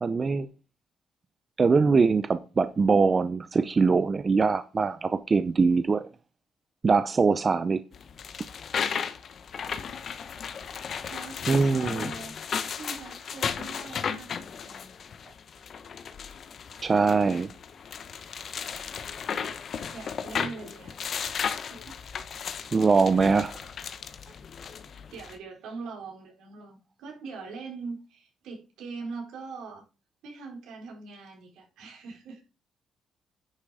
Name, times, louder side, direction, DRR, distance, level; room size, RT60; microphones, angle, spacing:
voice 1, 0.0-0.5 1.6-6.0 6.8-7.8 11.5-12.0 16.8-17.5 22.7-23.6, right 4 dB, 35° right, 0.7 m, -22 dB
sound 1, 7.9-25.4, left 7 dB, 55° left, 1.1 m, -35 dB
voice 2, 11.1-12.3 12.8-14.9 19.9-20.9 21.7-21.9 25.1-29.8 30.2-32.4, right 4 dB, 85° right, 4.3 m, -42 dB
9.9 x 6.2 x 5.0 m
cardioid pair, 90°, 0 cm